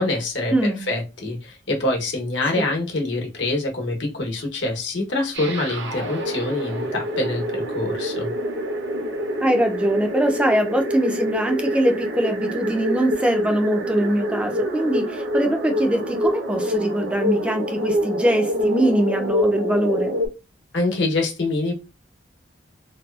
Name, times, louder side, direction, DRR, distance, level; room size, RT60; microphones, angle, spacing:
voice 1, 0.0-8.3 20.7-21.7, left 2 dB, 75° left, 0.9 m, -25 dB
voice 2, 0.5-0.8 9.4-20.1, right 1 dB, 5° right, 0.3 m, -22 dB
sound 1, 5.3-20.3, equal, 75° right, 0.7 m, -26 dB
2.6 x 2.3 x 2.2 m
head